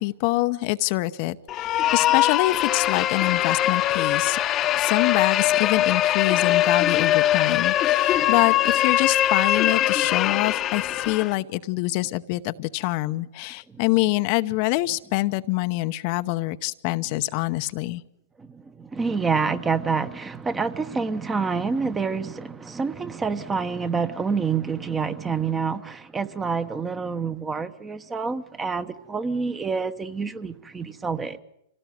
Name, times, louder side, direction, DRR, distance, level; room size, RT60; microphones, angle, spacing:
voice 1, 0.0-4.4 4.8-18.0, left 19 dB, 45° left, 0.8 m, -25 dB
sound 1, 1.5-11.3, left 13 dB, 30° left, 1.0 m, -22 dB
voice 2, 18.4-31.4, right 5 dB, 15° right, 1.2 m, -27 dB
26.0 x 17.5 x 9.3 m
hypercardioid pair, 125°, 0 cm